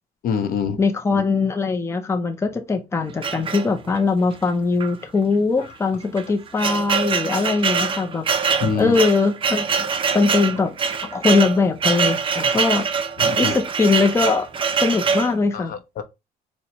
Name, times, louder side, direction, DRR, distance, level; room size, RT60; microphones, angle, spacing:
voice 1, 0.2-0.8 1.1-1.3 5.6-5.7 8.6-9.0 13.2-13.5 15.5-16.0, left 6 dB, 60° left, 0.7 m, -25 dB
voice 2, 0.8-9.9 10.1-10.7 11.1-12.9 13.4-14.5 14.8-15.8, left 4 dB, 15° left, 0.5 m, -21 dB
sound 1, 3.2-4.1 4.8-4.9 5.2-5.3 6.0-15.3, right 5 dB, 30° right, 0.5 m, -23 dB
4.2 x 2.1 x 2.8 m
cardioid pair, 110°, 17 cm